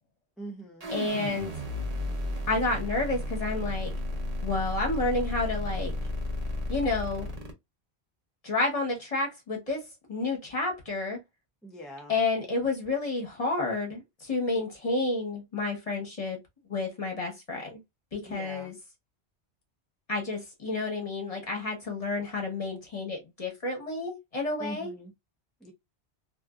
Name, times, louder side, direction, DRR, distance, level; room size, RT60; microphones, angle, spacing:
voice 1, 0.4-0.9 11.6-12.1 18.2-18.7 24.6-25.1 25.6-25.7, right 1 dB, ahead, 0.3 m, -42 dB
sound 1, 0.8-7.5, left 1 dB, 40° right, 0.8 m, -33 dB
voice 2, 0.9-1.6 2.5-3.9 4.4-5.9 6.7-7.3 8.4-11.2 12.1-16.4 16.7-17.8 18.1-18.7 20.1-24.9, left 3 dB, 35° left, 1.1 m, -30 dB
2.6 x 2.5 x 2.3 m
omnidirectional pair, 1.1 m